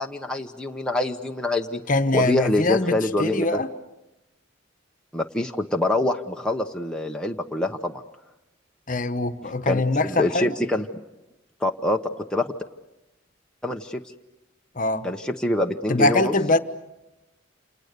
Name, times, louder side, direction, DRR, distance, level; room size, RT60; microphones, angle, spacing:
voice 1, 0.0-1.8 2.1-3.6 5.1-8.0 9.7-10.9 11.6-12.5 13.6-14.0 15.0-16.3, left 1 dB, 5° left, 0.9 m, -25 dB
voice 2, 1.9-3.7 8.9-10.5 14.7-15.1 15.9-16.6, left 2 dB, 40° left, 1.1 m, -23 dB
29.0 x 28.0 x 6.7 m
head